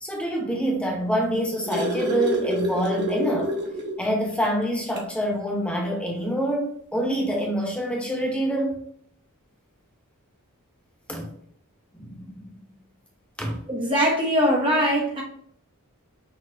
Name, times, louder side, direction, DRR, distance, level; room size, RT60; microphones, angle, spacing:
voice 1, 0.0-3.5 4.0-8.8 11.1-11.3 11.9-12.5 13.4-13.6, right 1 dB, 5° left, 0 dB, 1.0 m, -26 dB
sound 1, 1.1-4.0 4.4-4.5 4.9-5.1 6.3-6.4, left 1 dB, 50° right, 1.2 m, -28 dB
voice 2, 13.7-15.2, equal, 25° right, -1 dB, 0.7 m, -21 dB
6.2 x 3.0 x 2.7 m, 0.65 s
head